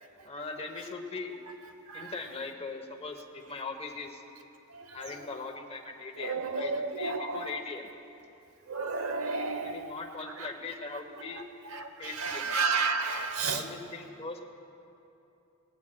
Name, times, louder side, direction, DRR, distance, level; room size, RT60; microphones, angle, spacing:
voice 1, 0.2-1.4 1.9-4.2 4.9-7.9 9.5-11.5 12.0-12.5 13.5-14.4, left 4 dB, 30° left, 5 dB, 0.9 m, -40 dB
voice 2, 6.2-7.5 8.7-9.8 11.7-13.6, right 4 dB, 80° right, 8 dB, 0.8 m, -31 dB
19.0 x 16.0 x 2.2 m, 2.8 s
head